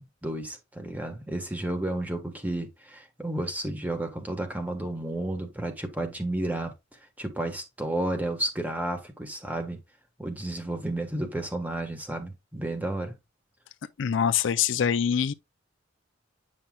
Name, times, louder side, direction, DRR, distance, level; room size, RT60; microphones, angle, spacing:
voice 1, 0.0-6.7 7.2-9.8 10.2-13.2, right 1 dB, 10° right, 1.3 m, -32 dB
voice 2, 14.0-15.3, left 8 dB, 70° left, 0.5 m, -24 dB
9.0 x 5.5 x 2.3 m
head